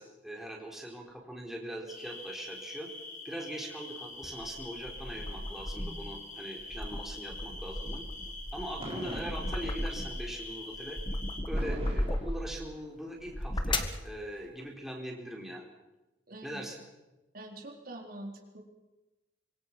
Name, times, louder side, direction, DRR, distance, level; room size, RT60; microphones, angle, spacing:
voice 1, 0.0-2.9 3.2-8.0 8.5-11.0 11.5-15.6 16.4-16.8, right 1 dB, ahead, -1 dB, 4.3 m, -41 dB
sound 1, 1.9-11.4, left 3 dB, 45° left, 5.5 m, -45 dB
sound 2, 4.2-6.1 6.6-10.3 10.7-12.6 13.2-14.0, left 1 dB, 30° left, 1.8 m, -35 dB
Fireworks, 8.8-10.1 11.5-13.1, right 1 dB, 35° right, 4.2 m, -42 dB
voice 2, 16.3-16.6 17.3-18.6, right 1 dB, 55° right, 0 dB, 4.3 m, -44 dB
25.5 x 23.5 x 6.1 m, 1.1 s
head